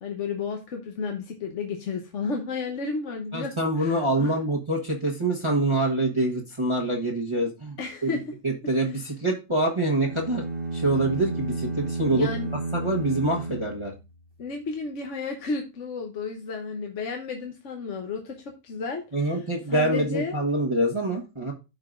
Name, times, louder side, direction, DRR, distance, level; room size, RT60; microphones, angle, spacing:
voice 1, 0.0-3.5 3.8-4.3 7.8-8.2 12.1-12.5 14.4-19.3 19.7-20.4, left 4 dB, 70° left, 3 dB, 1.3 m, -32 dB
voice 2, 3.3-7.8 8.0-8.2 8.4-10.4 10.7-12.3 12.7-13.9 19.1-21.5, right 1 dB, 25° right, -4 dB, 1.2 m, -25 dB
sound 1, 10.0-14.4, right 2 dB, 50° right, 1.3 m, -32 dB
14.0 x 4.8 x 2.5 m, 0.27 s
omnidirectional pair, 1.3 m